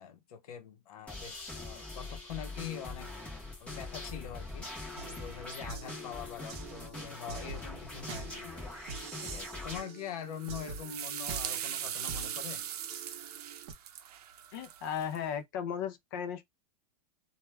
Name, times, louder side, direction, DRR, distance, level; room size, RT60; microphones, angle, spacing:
voice 1, 0.0-3.2 3.6-8.5 9.2-12.6, left 9 dB, 65° left, 0.7 m, -44 dB
sound 1, 1.1-9.8, left 2 dB, 5° left, 0.7 m, -43 dB
sound 2, 5.0-13.7, right 5 dB, 40° right, 0.8 m, -46 dB
sound 3, 10.3-15.2, right 10 dB, 75° right, 0.6 m, -40 dB
voice 2, 14.5-16.4, left 8 dB, 30° left, 0.4 m, -36 dB
2.2 x 2.2 x 3.2 m
supercardioid pair, 175°, 20 cm